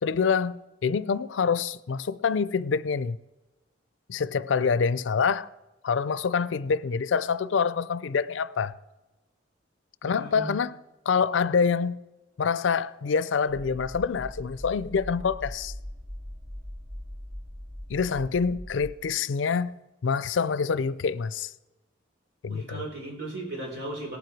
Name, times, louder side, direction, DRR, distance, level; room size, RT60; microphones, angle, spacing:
voice 1, 0.0-3.2 4.1-5.5 5.8-8.7 10.0-10.8 11.1-12.0 12.4-15.7 17.9-19.7 20.0-21.5 22.4-22.8, left 5 dB, 80° left, 0.4 m, -26 dB
voice 2, 10.0-10.6 22.5-24.2, right 1 dB, 55° right, 4.5 m, -36 dB
sound 1, 13.5-19.0, left 1 dB, 20° right, 1.3 m, -41 dB
18.5 x 7.8 x 4.6 m
head